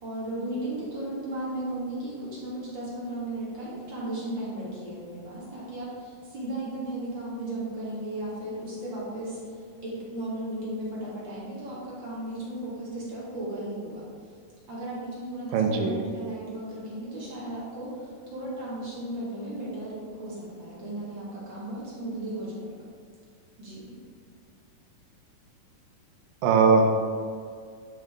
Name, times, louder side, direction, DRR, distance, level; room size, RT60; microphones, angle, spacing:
voice 1, 0.0-14.0 14.7-22.7 23.6-23.9, right 1 dB, 40° right, -7 dB, 2.3 m, -35 dB
voice 2, 15.5-16.0 26.4-26.9, right 4 dB, 85° right, 3 dB, 2.5 m, -20 dB
10.0 x 6.3 x 3.8 m, 2.1 s
omnidirectional pair, 3.9 m